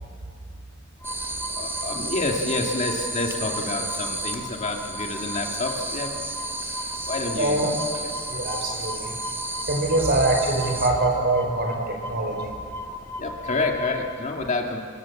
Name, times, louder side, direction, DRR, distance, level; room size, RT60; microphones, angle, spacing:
sound 1, 1.0-14.1, equal, 10° left, 2.2 m, -37 dB
sound 2, 1.0-10.9, right 2 dB, 10° right, 2.6 m, -33 dB
voice 1, 1.5-6.1 7.1-7.6 8.0-8.1 13.2-14.8, left 3 dB, 35° left, 1 dB, 2.4 m, -28 dB
voice 2, 7.4-7.7 8.3-9.1 9.7-12.5, right 2 dB, 50° right, 3 dB, 5.2 m, -24 dB
28.0 x 25.5 x 7.3 m, 2.2 s
head